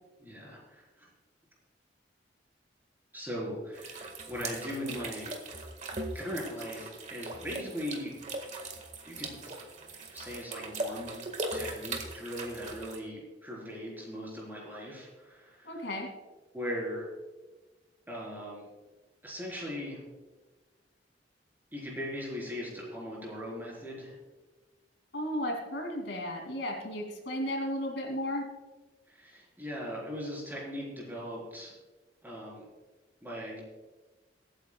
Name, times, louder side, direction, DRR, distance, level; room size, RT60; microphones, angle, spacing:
voice 1, 0.2-1.1 3.1-5.4 6.1-8.2 9.0-9.4 10.1-11.2 11.5-15.9 16.5-17.1 18.1-18.7 19.2-20.0 21.7-24.2 29.1-31.7 32.2-32.7 33.2-33.6, equal, 10° right, -4 dB, 4.2 m, -39 dB
sound 1, 3.7-13.0, right 2 dB, 40° right, 1.7 m, -40 dB
voice 2, 15.6-16.1 25.1-28.5, equal, 75° left, 2 dB, 2.7 m, -34 dB
23.0 x 9.2 x 2.3 m, 1.2 s
head